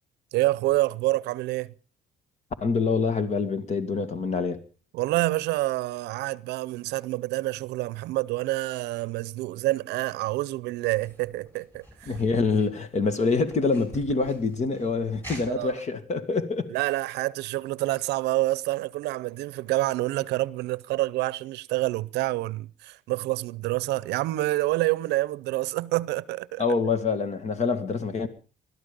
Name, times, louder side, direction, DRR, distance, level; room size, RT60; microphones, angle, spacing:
voice 1, 0.3-1.7 4.9-12.1 15.5-15.7 16.7-26.6, right 18 dB, 85° right, 0.7 m, -27 dB
voice 2, 2.6-4.6 12.1-16.7 26.6-28.3, left 4 dB, 40° left, 2.2 m, -26 dB
sound 1, 10.8-15.8, equal, 10° left, 8.0 m, -47 dB
20.5 x 12.5 x 5.3 m
cardioid pair, 110°, 17 cm